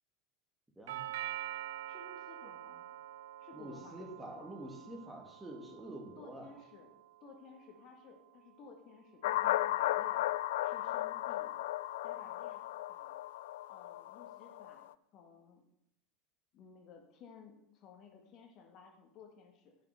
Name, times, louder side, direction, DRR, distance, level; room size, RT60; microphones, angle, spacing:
voice 1, 0.8-1.1 3.5-6.5, right 1 dB, 10° right, 2 dB, 2.5 m, -47 dB
Doorbell, 0.9-8.9, right 13 dB, 65° right, 0.5 m, -47 dB
voice 2, 1.9-2.9 3.4-4.5 6.2-10.2 10.6-11.5 12.0-12.6 12.9-13.2 13.7-14.9 15.1-15.6 16.5-19.8, left 5 dB, 45° left, 3 dB, 1.8 m, -56 dB
sound 1, 9.2-14.8, left 14 dB, 65° left, 0.3 m, -35 dB
10.5 x 5.8 x 6.8 m, 0.76 s
figure-of-eight pair, 80°, 0 cm